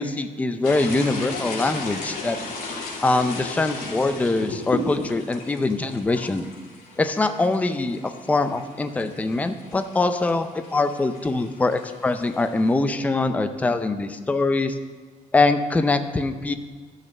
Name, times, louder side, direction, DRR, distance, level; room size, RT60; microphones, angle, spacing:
voice 1, 0.0-2.4 3.0-6.5 7.0-14.8 15.3-16.5, left 3 dB, 10° left, 9 dB, 0.5 m, -23 dB
sound 1, 0.6-12.7, left 2 dB, 80° left, 2.6 m, -35 dB
12.0 x 6.5 x 6.5 m, 1.5 s
cardioid pair, 170°, 14 cm